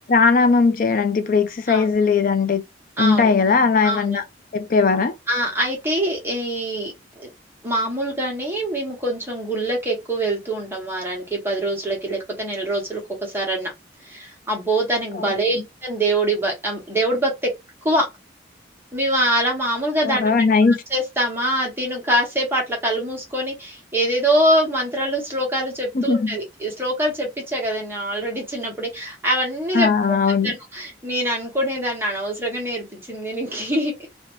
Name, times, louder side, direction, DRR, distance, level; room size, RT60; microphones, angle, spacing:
voice 1, 0.1-2.6 3.0-4.2 4.5-5.1 15.2-15.3 20.0-20.8 25.9-26.4 29.7-30.5, left 4 dB, 50° left, 0.4 m, -18 dB
voice 2, 3.0-3.3 3.8-4.2 5.3-7.3 7.6-13.7 14.0-17.3 17.8-18.0 18.9-20.3 20.7-30.2 30.4-33.9, right 1 dB, 10° right, 0.9 m, -24 dB
2.6 x 2.1 x 3.0 m
head